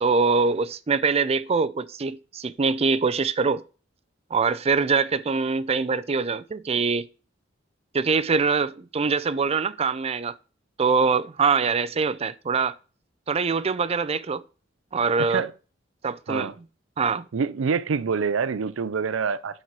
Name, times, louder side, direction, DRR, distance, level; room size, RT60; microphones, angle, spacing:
voice 1, 0.0-3.6 4.3-7.1 7.9-10.3 10.8-12.7 13.3-14.4 14.9-15.4 16.0-16.5 17.0-17.3, right 5 dB, 30° right, 0.5 m, -23 dB
voice 2, 15.2-15.5 16.3-16.5 17.3-19.6, right 5 dB, 90° right, 0.5 m, -26 dB
11.0 x 4.4 x 4.6 m
head